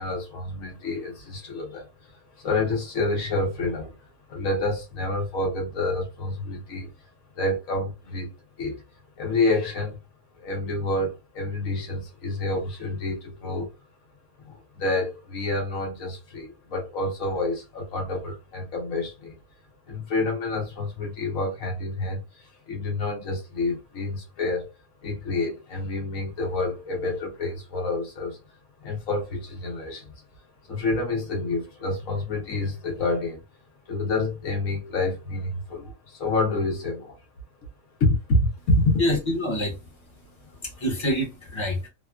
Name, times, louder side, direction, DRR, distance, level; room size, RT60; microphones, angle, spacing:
voice 1, 0.0-1.9 2.4-3.9 4.3-6.9 7.3-8.8 9.2-10.0 10.4-13.7 14.4-19.4 19.9-24.7 25.0-28.4 28.8-30.1 30.7-33.4 33.9-37.2 38.0-39.0, left 2 dB, 90° left, 1.4 m, -28 dB
voice 2, 39.0-39.9 40.5-41.9, left 1 dB, 25° left, 1.0 m, -27 dB
3.3 x 2.3 x 2.3 m
omnidirectional pair, 1.4 m